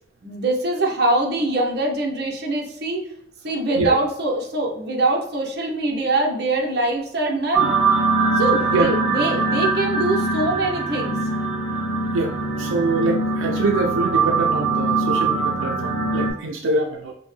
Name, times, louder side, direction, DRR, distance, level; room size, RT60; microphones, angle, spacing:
voice 1, 0.2-3.0 3.4-7.7 8.4-11.2, right 2 dB, 55° right, 0 dB, 0.8 m, -23 dB
sound 1, 7.5-16.3, right 3 dB, 10° right, 1.6 m, -22 dB
voice 2, 12.1-17.1, right 2 dB, 85° right, 2 dB, 0.5 m, -24 dB
5.2 x 2.1 x 3.2 m, 0.72 s
head